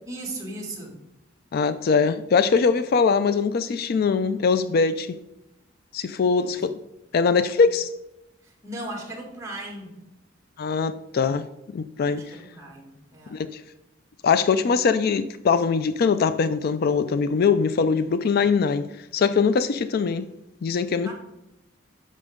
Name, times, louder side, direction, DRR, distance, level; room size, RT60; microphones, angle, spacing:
voice 1, 0.0-1.0 6.3-6.6 8.4-9.9 12.1-13.4 21.0-21.1, right 1 dB, 15° right, 2.3 m, -37 dB
voice 2, 1.5-5.2 5.9-6.8 7.1-7.9 10.6-11.4 11.7-12.4 13.3-13.6 14.2-20.3 20.6-21.1, left 5 dB, 50° left, 0.4 m, -22 dB
10.5 x 6.7 x 3.6 m
head